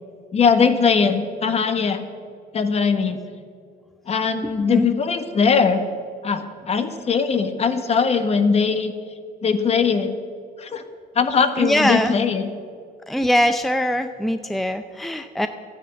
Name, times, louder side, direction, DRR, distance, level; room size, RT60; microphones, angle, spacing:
voice 1, 0.3-2.0 2.5-3.2 4.1-5.8 6.2-8.9 9.4-10.1 10.6-10.8 11.1-12.5, left 5 dB, 40° left, 9 dB, 1.3 m, -20 dB
voice 2, 4.4-4.9 11.6-12.1 13.1-15.5, equal, ahead, 9 dB, 0.5 m, -22 dB
13.0 x 9.9 x 7.8 m, 2.2 s
cardioid pair, 110°, 17 cm